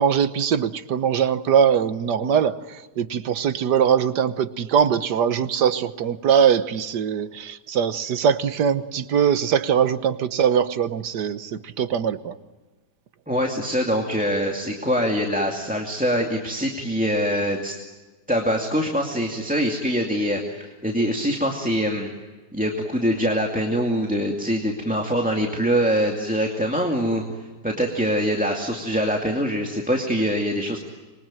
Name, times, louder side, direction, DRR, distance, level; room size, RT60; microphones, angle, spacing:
voice 1, 0.0-12.4, right 8 dB, 80° right, 12 dB, 1.6 m, -21 dB
voice 2, 13.3-17.8 18.3-22.1 22.5-30.8, equal, 5° right, 1 dB, 2.3 m, -24 dB
26.0 x 23.0 x 9.0 m, 1.2 s
omnidirectional pair, 1.8 m